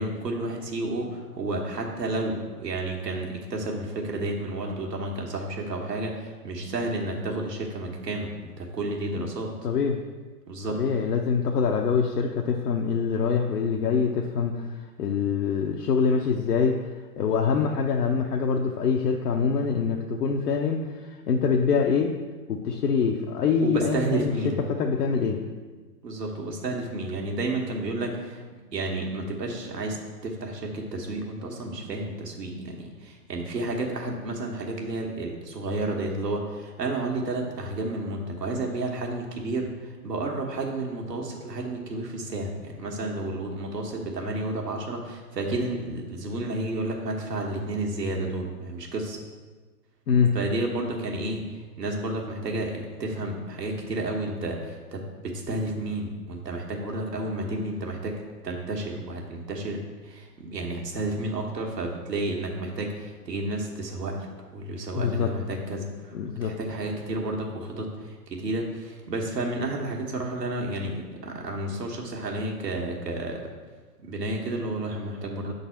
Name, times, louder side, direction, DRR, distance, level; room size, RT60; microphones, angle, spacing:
voice 1, 0.0-9.5 10.5-10.8 23.6-24.6 26.0-28.4 28.7-30.0 30.2-49.2 50.3-58.2 58.4-66.2 66.4-73.4 74.0-75.5, right 2 dB, 80° right, 0 dB, 1.4 m, -31 dB
voice 2, 9.6-10.0 10.7-14.7 15.0-16.8 17.2-22.1 22.5-24.3 24.7-25.4 50.1-50.4 65.0-65.3 66.1-66.5, left 6 dB, 70° left, 1 dB, 0.7 m, -24 dB
6.2 x 4.0 x 5.7 m, 1.3 s
hypercardioid pair, 130°, 48 cm